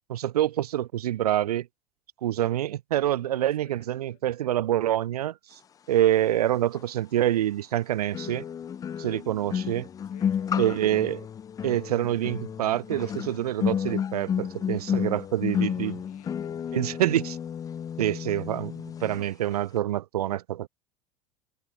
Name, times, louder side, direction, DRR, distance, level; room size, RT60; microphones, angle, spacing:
voice 1, 0.1-1.7 2.2-5.6 5.9-8.4 9.0-9.9 10.6-11.2 11.6-16.0 16.7-17.4 18.0-20.7, right 12 dB, 75° right, 0.5 m, -26 dB
voice 2, 3.2-4.2 8.8-9.2 10.0-10.8 15.4-17.1, left 16 dB, 65° left, 5.3 m, -55 dB
sound 1, 6.7-6.8 8.1-19.2 19.5-19.8, left 8 dB, 20° left, 0.4 m, -32 dB
figure-of-eight pair, 80°, 20 cm